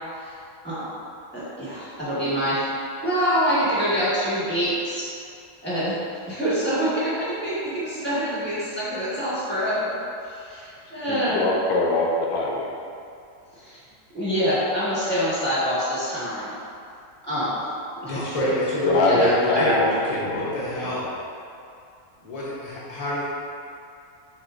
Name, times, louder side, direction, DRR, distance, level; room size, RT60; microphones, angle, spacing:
voice 1, 1.3-2.6 3.0-5.0 5.6-6.0 6.3-10.0 10.2-11.4 13.5-13.8 14.1-16.5 17.2-17.6 18.0-18.2 19.0-19.7, equal, 5° left, -12 dB, 1.3 m, -25 dB
voice 2, 11.1-12.7 18.8-20.9, left 2 dB, 80° left, -2 dB, 1.1 m, -24 dB
voice 3, 18.0-21.1 22.2-23.2, left 1 dB, 35° left, -7 dB, 0.7 m, -27 dB
4.4 x 3.6 x 2.5 m, 2.5 s
omnidirectional pair, 1.6 m